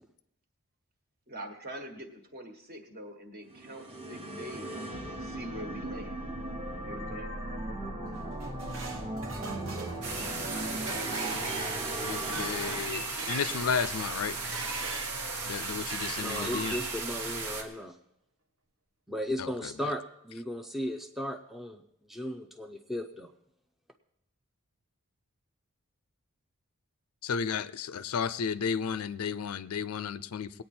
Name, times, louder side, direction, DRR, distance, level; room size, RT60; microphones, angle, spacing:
voice 1, 1.3-4.7 5.1-6.2 6.7-7.3, equal, 45° right, 5 dB, 1.5 m, -43 dB
sound 1, 3.5-13.7, right 1 dB, 25° right, 1.1 m, -38 dB
sound 2, 8.2-15.2 15.6-17.0, right 4 dB, 65° right, 1.1 m, -40 dB
sound 3, 10.0-17.6, right 3 dB, 85° right, 1.5 m, -36 dB
voice 2, 12.0-14.4 15.5-16.8 19.4-19.9 27.2-30.6, left 6 dB, 75° left, 16 dB, 0.5 m, -33 dB
voice 3, 16.2-17.9 19.1-21.8 22.1-23.3, equal, ahead, 4 dB, 0.5 m, -36 dB
19.5 x 8.9 x 4.4 m, 0.78 s
head